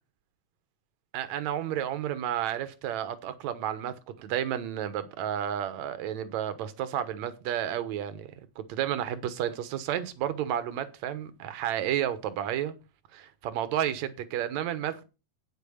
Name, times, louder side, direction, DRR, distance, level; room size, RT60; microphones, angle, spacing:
voice 1, 1.1-12.7 13.1-15.0, right 10 dB, 75° right, 2.4 m, -31 dB
9.1 x 8.5 x 5.6 m
omnidirectional pair, 3.3 m